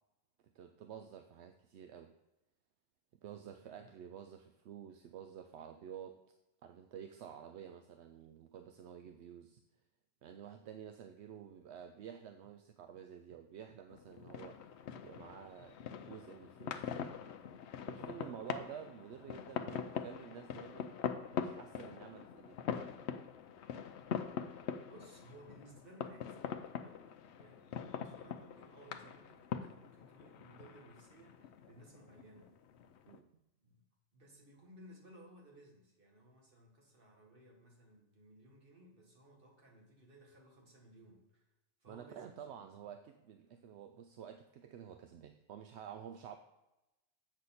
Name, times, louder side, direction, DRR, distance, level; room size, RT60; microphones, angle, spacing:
voice 1, 0.5-2.1 3.2-6.2 6.6-9.6 10.2-14.6 15.0-17.0 17.8-21.0 21.4-22.6 33.1-33.3 41.9-46.4, right 8 dB, 65° right, 7 dB, 0.8 m, -50 dB
voice 2, 3.6-4.1 24.8-32.5 33.6-33.8 34.1-41.5 41.8-42.8, right 1 dB, 45° right, 0 dB, 1.8 m, -59 dB
sound 1, 13.9-33.2, left 7 dB, 65° left, 0.8 m, -43 dB
8.0 x 6.4 x 4.2 m, 0.95 s
omnidirectional pair, 1.4 m